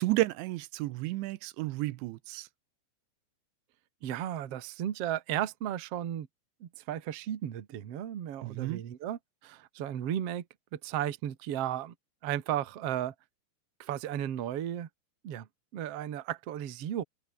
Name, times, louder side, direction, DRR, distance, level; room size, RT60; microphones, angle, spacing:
voice 1, 0.0-2.5 8.4-8.8, right 18 dB, 90° right, 3.1 m, -32 dB
voice 2, 4.0-6.3 6.6-10.4 10.7-11.9 12.2-13.1 13.8-14.9 15.2-15.5 15.7-17.0, right 11 dB, 55° right, 1.7 m, -34 dB
omnidirectional pair, 5.2 m